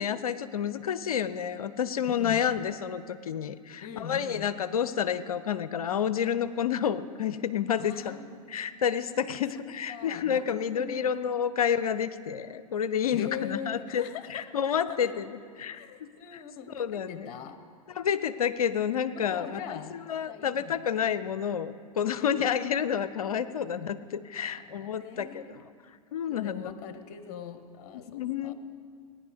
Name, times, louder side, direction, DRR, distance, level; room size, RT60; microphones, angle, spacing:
voice 1, 0.0-8.2 8.5-14.0 14.3-15.3 15.6-16.4 16.8-17.3 18.0-25.4 26.1-26.7 28.1-28.5, left 8 dB, 70° left, 14 dB, 0.6 m, -29 dB
voice 2, 2.1-2.5 3.8-4.5 7.8-8.4 9.1-9.6 9.9-11.1 13.1-14.5 14.9-15.1 15.7-17.6 19.2-19.9 20.3-20.8 22.1-22.5 24.4-25.6 26.3-28.5, left 8 dB, 40° left, 10 dB, 1.1 m, -42 dB
18.5 x 9.8 x 5.3 m, 2.2 s
figure-of-eight pair, 95°, 19 cm